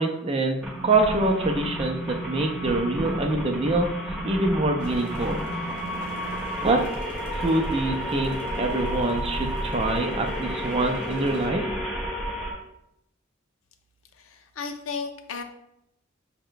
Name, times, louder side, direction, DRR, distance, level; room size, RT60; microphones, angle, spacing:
voice 1, 0.0-3.9 4.2-5.4 6.6-6.8 7.3-11.6, right 2 dB, 30° right, 3 dB, 0.4 m, -25 dB
sound 1, 0.6-12.5, equal, ahead, 1.2 m, -31 dB
sound 2, 4.8-11.5, left 1 dB, 30° left, 1.0 m, -42 dB
voice 2, 14.1-15.4, left 5 dB, 90° left, 6 dB, 0.5 m, -34 dB
5.6 x 2.1 x 3.8 m, 0.82 s
head